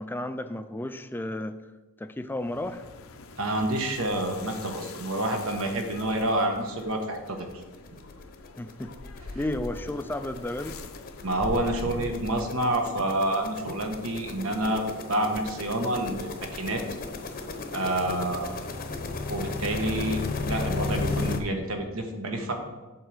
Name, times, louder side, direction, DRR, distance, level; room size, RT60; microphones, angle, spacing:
voice 1, 0.0-1.6 2.0-2.8 8.6-8.9 9.3-10.8, left 1 dB, 10° left, 10 dB, 0.4 m, -33 dB
sound 1, 2.3-12.7, left 2 dB, 75° left, 0.7 m, -43 dB
voice 2, 3.4-7.5 11.2-16.8 17.7-18.5 19.3-22.5, right 1 dB, 75° right, 3 dB, 1.3 m, -28 dB
sound 2, 6.0-6.1 6.4-6.5 6.8-21.4, left 3 dB, 45° left, 0.8 m, -35 dB
7.8 x 4.5 x 6.7 m, 1.2 s
head